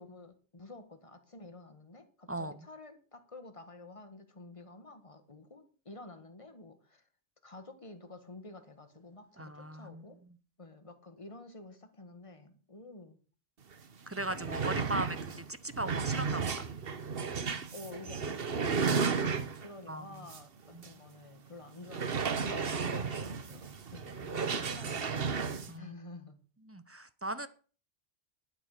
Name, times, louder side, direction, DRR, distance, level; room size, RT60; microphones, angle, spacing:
voice 1, 0.0-7.0 7.4-10.2 10.6-13.2 14.5-14.9 17.7-24.1 24.5-25.2 25.7-26.4, left 2 dB, 30° left, 1.7 m, -50 dB
voice 2, 2.3-2.7 9.4-10.0 14.1-15.2 15.5-16.7 19.9-20.3 20.7-20.8 22.4-22.8 24.2-24.7 25.7-25.9 26.7-27.5, right 1 dB, 15° right, 0.7 m, -39 dB
sound 1, 13.7-13.8 14.1-19.8 20.3-20.4 20.8-20.9 21.9-25.7, right 5 dB, 55° right, 1.3 m, -33 dB
11.0 x 9.4 x 6.7 m
omnidirectional pair, 1.2 m